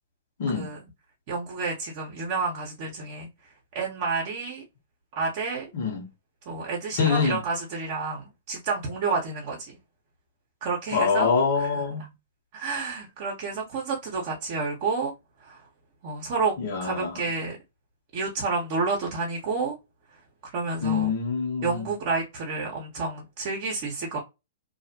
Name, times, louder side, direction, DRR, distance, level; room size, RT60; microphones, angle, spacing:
voice 1, 1.3-3.3 3.7-4.6 5.2-5.6 6.5-9.7 10.6-11.3 11.6-11.7 12.5-15.1 15.4-15.6 16.0-16.5 16.8-17.6 18.1-19.8 20.4-21.1 21.6-24.2, right 4 dB, 45° right, 0.8 m, -30 dB
voice 2, 5.7-6.1 7.0-7.4 10.9-12.1 16.6-17.2 20.8-21.9, left 5 dB, 60° left, 1.2 m, -25 dB
2.6 x 2.0 x 2.7 m
hypercardioid pair, 120°, 0 cm